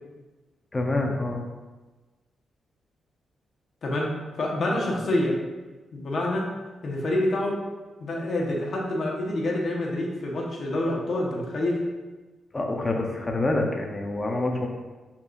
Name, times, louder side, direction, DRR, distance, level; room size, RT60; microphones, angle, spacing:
voice 1, 0.7-1.4 12.5-14.7, left 2 dB, 25° left, 1 dB, 0.8 m, -26 dB
voice 2, 3.8-4.1 4.4-5.4 5.9-6.5 6.8-7.6 8.0-11.8, left 1 dB, 55° left, -2 dB, 1.3 m, -27 dB
6.2 x 5.8 x 2.6 m, 1.2 s
cardioid pair, 100°, 0 cm